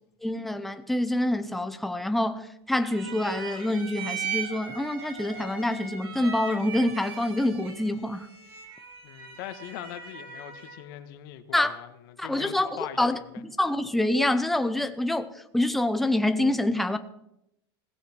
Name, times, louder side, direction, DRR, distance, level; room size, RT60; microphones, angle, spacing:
voice 1, 0.2-8.3 11.5-11.7 12.2-17.0, left 1 dB, ahead, 9 dB, 0.7 m, -26 dB
sound 1, 2.8-10.9, right 6 dB, 70° right, 5.1 m, -38 dB
voice 2, 9.0-13.4, left 12 dB, 60° left, 10 dB, 1.6 m, -41 dB
17.0 x 15.5 x 4.6 m, 0.81 s
supercardioid pair, 160°, 13 cm